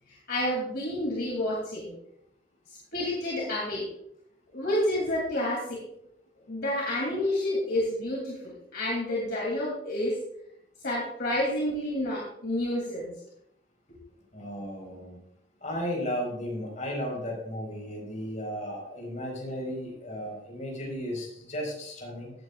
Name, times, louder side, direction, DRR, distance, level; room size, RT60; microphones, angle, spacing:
voice 1, 0.3-1.9 2.9-3.9 4.5-5.8 6.5-10.2 10.8-13.1, left 1 dB, 60° left, -4 dB, 2.7 m, -29 dB
voice 2, 14.3-15.2 15.6-22.3, equal, 40° left, -1 dB, 4.6 m, -34 dB
16.0 x 9.2 x 2.4 m, 0.73 s
head